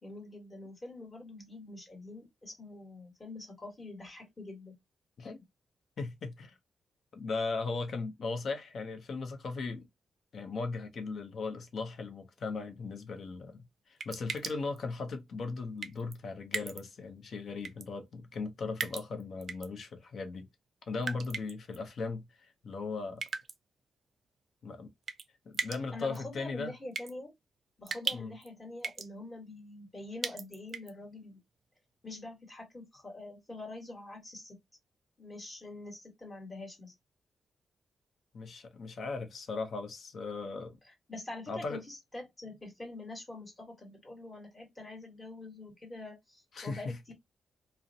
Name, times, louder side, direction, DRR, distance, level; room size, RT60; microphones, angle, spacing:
voice 1, 0.0-4.7 25.9-27.3 27.8-31.4 32.0-34.6 35.2-36.9 40.8-47.1, left 2 dB, 25° left, 1.4 m, -45 dB
voice 2, 6.0-6.5 7.1-9.9 10.3-20.5 20.9-23.2 24.6-24.9 25.5-26.7 28.1-28.3 38.3-40.8 41.5-41.8 46.5-47.0, left 4 dB, 65° left, 0.6 m, -38 dB
sound 1, 14.0-14.8 15.8-16.2 16.5-16.8 17.6-17.9 18.8-19.7 21.0-21.8 23.2-23.6 25.1-25.3 25.5-25.8 26.1-26.2 27.0-27.1 27.9-28.5 28.8-29.1 30.2-30.9, right 5 dB, 60° right, 0.3 m, -37 dB
2.5 x 2.1 x 2.6 m
cardioid pair, 80°, 0 cm